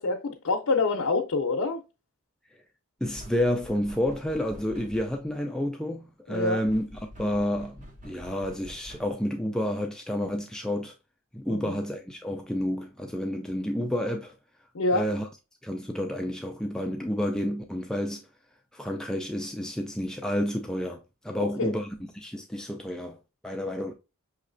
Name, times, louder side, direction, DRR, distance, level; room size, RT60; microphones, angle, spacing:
voice 1, 0.0-1.8 6.3-6.6 11.5-11.8 14.7-15.1 21.4-21.7, left 3 dB, 80° left, 0.6 m, -26 dB
voice 2, 3.0-6.8 7.2-10.9 11.3-14.4 14.9-15.3 15.6-18.3 18.7-21.9 22.1-23.2 23.4-23.9, equal, 5° left, 0.3 m, -30 dB
sound 1, 3.1-5.4 6.7-9.3, equal, 35° right, 0.9 m, -47 dB
5.6 x 3.1 x 2.5 m
head